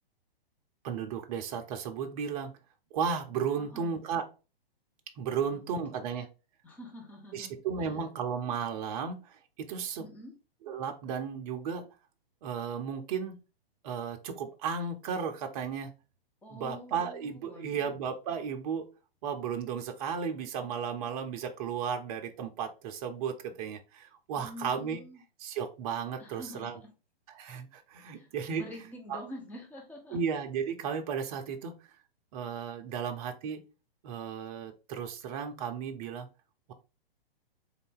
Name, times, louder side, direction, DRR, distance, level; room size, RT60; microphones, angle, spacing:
voice 1, 0.8-2.5 2.9-4.3 5.2-6.3 7.3-10.1 10.6-11.9 12.4-13.4 13.8-15.9 16.5-18.9 19.2-25.0 25.4-26.8 27.3-28.7 29.1-29.2 30.1-31.8 32.3-33.6 34.0-36.3, right 6 dB, 35° right, 5 dB, 0.7 m, -34 dB
voice 2, 3.6-4.0 5.4-5.6 5.9-6.0 6.6-7.9 10.0-10.3 16.4-18.0 24.4-25.2 26.2-26.8 28.1-30.2, left 1 dB, 5° left, 0 dB, 0.8 m, -47 dB
3.9 x 2.7 x 3.6 m, 0.32 s
hypercardioid pair, 135°, 30 cm